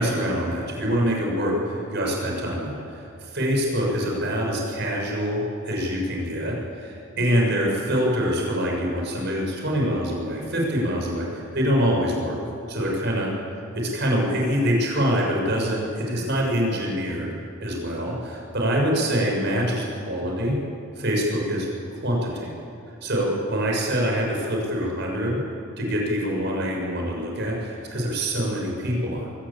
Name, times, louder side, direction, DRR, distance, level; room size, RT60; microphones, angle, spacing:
voice 1, 0.0-12.4 12.7-13.3 13.7-17.3 17.6-20.6 21.0-22.5 23.0-25.4 25.8-29.3, equal, 60° right, -1 dB, 6.3 m, -25 dB
23.5 x 16.0 x 8.7 m, 2.7 s
head